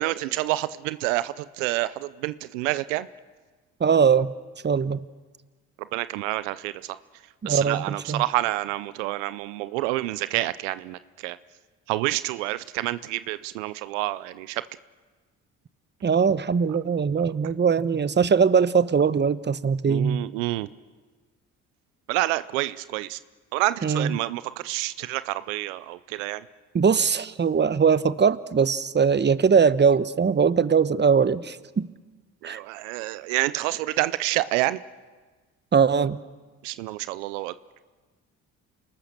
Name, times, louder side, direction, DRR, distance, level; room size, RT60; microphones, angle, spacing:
voice 1, 0.0-3.1 5.8-7.0 7.4-11.4 11.9-14.6 19.9-20.7 22.1-23.2 23.5-26.4 32.4-34.8 36.6-37.8, right 17 dB, 85° right, 16 dB, 0.6 m, -28 dB
voice 2, 3.8-4.3 4.6-5.0 7.4-8.2 16.0-20.2 23.8-24.2 26.7-31.9 32.4-32.6 35.7-36.2, right 6 dB, 30° right, 15 dB, 1.0 m, -21 dB
29.0 x 19.5 x 6.7 m, 1.3 s
hypercardioid pair, 55°, 36 cm